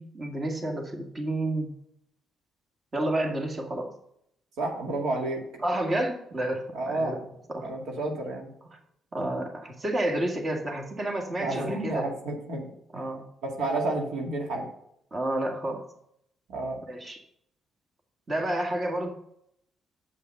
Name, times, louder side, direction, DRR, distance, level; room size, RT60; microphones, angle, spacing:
voice 1, 0.0-1.7 2.9-3.9 5.6-7.1 7.5-7.7 9.1-12.1 12.9-13.2 15.1-15.8 16.9-17.2 18.3-19.1, right 1 dB, 30° right, 2 dB, 2.0 m, -30 dB
voice 2, 4.6-5.4 6.7-7.2 7.6-8.5 11.4-13.1 13.4-14.7 16.5-16.8, right 2 dB, 85° right, 0 dB, 2.1 m, -31 dB
8.1 x 5.6 x 5.5 m, 0.73 s
cardioid pair, 90°, 0 cm